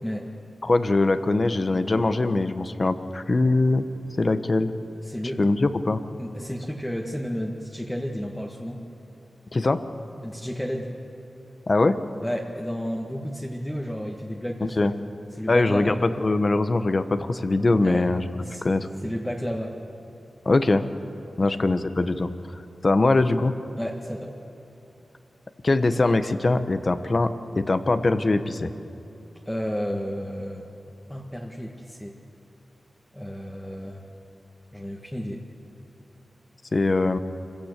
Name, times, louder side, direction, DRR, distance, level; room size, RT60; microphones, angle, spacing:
voice 1, 0.6-3.9 4.2-4.7 5.4-6.0 9.5-9.8 11.7-12.0 14.8-14.9 15.5-18.2 18.6-18.9 20.4-20.8 21.4-22.3 22.8-23.5 25.6-28.7 36.7-37.2, left 2 dB, 45° left, 10 dB, 1.1 m, -22 dB
voice 2, 5.0-5.4 6.2-8.8 10.2-10.9 12.2-14.8 15.3-16.0 17.8-18.1 18.4-18.7 19.0-19.8 21.4-21.6 23.8-24.3 29.5-30.7 31.1-32.2 33.1-34.0 34.7-35.4, equal, 10° left, -1 dB, 1.8 m, -32 dB
25.5 x 15.5 x 8.3 m, 2.9 s
cardioid pair, 65°, 0 cm